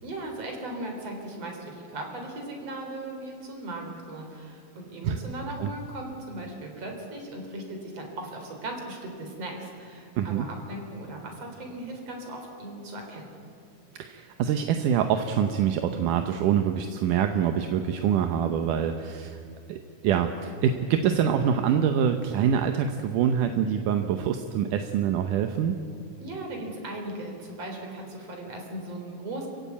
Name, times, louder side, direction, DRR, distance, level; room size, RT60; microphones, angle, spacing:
voice 1, 0.0-13.3 26.2-29.5, right 1 dB, 50° right, 2 dB, 4.7 m, -38 dB
voice 2, 10.2-10.5 13.9-19.4 19.7-25.7, right 8 dB, 80° right, 6 dB, 2.5 m, -25 dB
27.5 x 16.0 x 8.5 m, 2.6 s
omnidirectional pair, 3.7 m